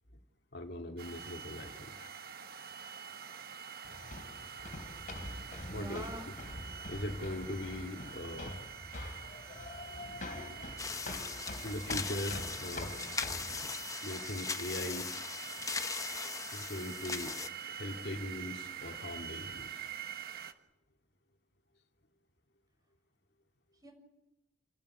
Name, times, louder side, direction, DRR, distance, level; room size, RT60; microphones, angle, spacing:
voice 1, 0.5-2.1 5.7-6.0 6.9-8.6 11.6-13.0 14.0-15.2 16.5-17.4 17.7-20.1, left 1 dB, 65° left, 4 dB, 2.3 m, -40 dB
sound 1, 1.0-20.5, right 8 dB, 60° right, 1.3 m, -46 dB
sound 2, 3.8-13.7, left 2 dB, 50° left, 3.3 m, -45 dB
voice 2, 5.7-6.3 9.9-10.5 23.8-23.9, right 2 dB, 20° right, 3 dB, 6.3 m, -46 dB
sound 3, 10.8-17.5, left 4 dB, 20° left, 1.0 m, -39 dB
29.0 x 12.0 x 10.0 m, 0.97 s
head